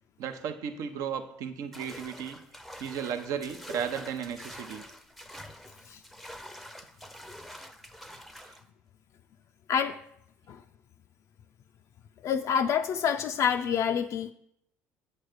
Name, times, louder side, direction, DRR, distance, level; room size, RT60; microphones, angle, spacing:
voice 1, 0.2-2.4 2.8-4.8 8.4-8.5, right 7 dB, 65° right, 8 dB, 0.7 m, -35 dB
sound 1, 1.7-8.6, equal, ahead, 0.6 m, -46 dB
voice 2, 12.2-14.3, left 7 dB, 55° left, 6 dB, 0.3 m, -27 dB
7.9 x 3.2 x 6.4 m, 0.73 s
supercardioid pair, 75°, 6 cm